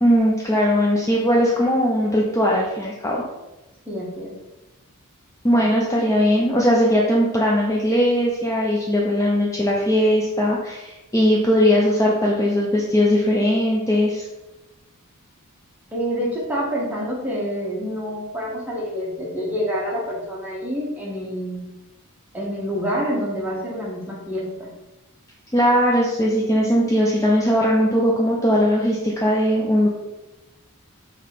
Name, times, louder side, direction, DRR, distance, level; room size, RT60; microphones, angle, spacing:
voice 1, 0.0-3.2 5.4-14.3 25.5-29.9, equal, 15° left, -3 dB, 0.4 m, -19 dB
voice 2, 3.9-4.3 5.5-5.8 15.9-21.6 22.3-24.7, equal, 10° right, -5 dB, 1.1 m, -27 dB
3.8 x 2.8 x 4.7 m, 1.0 s
head